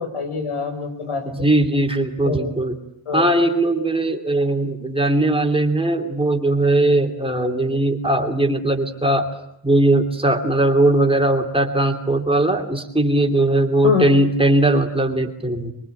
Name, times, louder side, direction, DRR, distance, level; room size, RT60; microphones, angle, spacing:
voice 1, 0.0-1.5 2.2-2.5 3.1-3.3 13.8-14.1, left 5 dB, 90° left, 6 dB, 5.9 m, -24 dB
voice 2, 1.3-2.8 3.1-9.2 9.6-15.7, right 2 dB, 10° right, 3 dB, 3.0 m, -19 dB
27.5 x 23.0 x 9.2 m, 0.78 s
wide cardioid pair, 165°, 50 cm